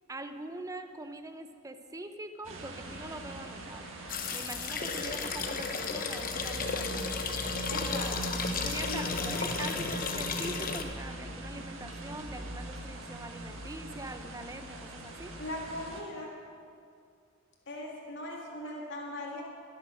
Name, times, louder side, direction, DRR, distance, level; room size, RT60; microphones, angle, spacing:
voice 1, 0.1-3.9 4.3-7.2 7.7-8.0 8.6-15.3, right 2 dB, 15° right, 8 dB, 0.7 m, -43 dB
sound 1, 2.4-16.0, right 1 dB, 70° right, 1.8 m, -41 dB
sound 2, 4.1-10.8, left 5 dB, 45° left, 1.0 m, -34 dB
voice 2, 7.7-8.4 8.8-9.0 15.4-16.3 17.7-19.4, left 1 dB, 60° left, -2 dB, 2.4 m, -39 dB
22.0 x 7.7 x 6.4 m, 2.3 s
head